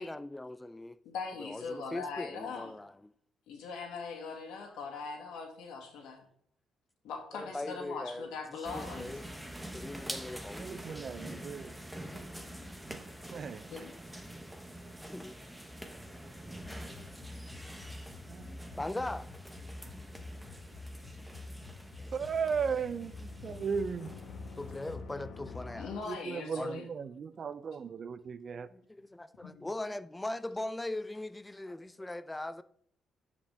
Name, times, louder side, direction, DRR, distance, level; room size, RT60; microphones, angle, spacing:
voice 1, 0.0-1.0 1.4-2.9 4.7-4.8 7.3-9.2 9.7-11.0 15.1-15.3 18.8-19.4 22.0-22.1 24.6-26.0 26.6-26.8 28.7-32.6, left 2 dB, 15° left, 0.4 m, -40 dB
voice 2, 1.1-2.7 3.5-6.2 7.0-9.2 13.7-13.9 25.8-26.8 29.4-29.6, left 5 dB, 90° left, 2.0 m, -41 dB
sound 1, 8.6-25.0, right 1 dB, 5° right, 1.0 m, -46 dB
voice 3, 10.6-12.0 12.9-13.0 13.3-13.7 18.3-18.6 22.1-24.1 26.1-28.7, right 6 dB, 50° right, 0.5 m, -36 dB
sound 2, 16.6-26.0, left 3 dB, 55° left, 1.2 m, -46 dB
11.5 x 5.1 x 3.5 m
cardioid pair, 90°, 0 cm